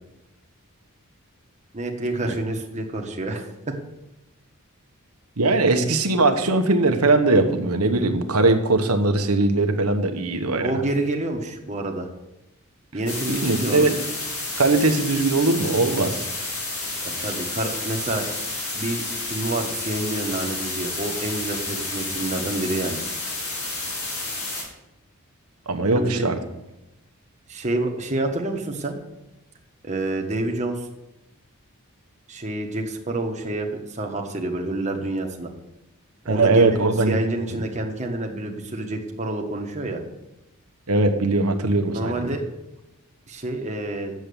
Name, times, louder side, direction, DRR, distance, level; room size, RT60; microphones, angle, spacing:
voice 1, 1.7-3.7 10.6-12.1 12.9-13.9 17.0-18.2 18.7-23.0 25.8-26.3 27.5-29.0 29.8-30.9 32.3-35.5 36.2-36.8 37.1-40.0 41.9-42.5 43.3-44.1, right 2 dB, 30° right, 2 dB, 1.4 m, -28 dB
voice 2, 5.4-10.7 13.3-13.9 14.6-16.2 17.1-17.3 25.7-26.4 36.3-37.2 40.9-42.3, right 2 dB, 85° right, 6 dB, 1.3 m, -20 dB
sound 1, 13.1-24.6, left 2 dB, 85° left, 5.2 m, -30 dB
9.5 x 7.7 x 6.9 m, 0.95 s
head